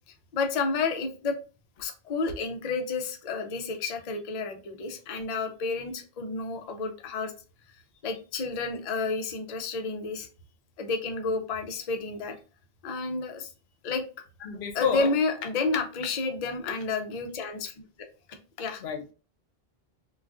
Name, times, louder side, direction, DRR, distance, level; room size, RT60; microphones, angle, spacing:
voice 1, 0.3-1.3 1.8-7.3 8.0-10.3 10.8-12.3 12.8-13.5 13.8-14.0 14.7-17.7 18.3-18.8, left 4 dB, 50° left, 0.5 m, -30 dB
voice 2, 14.4-15.1 18.8-19.1, left 7 dB, 85° left, 0.8 m, -29 dB
3.4 x 2.3 x 2.4 m
omnidirectional pair, 1.1 m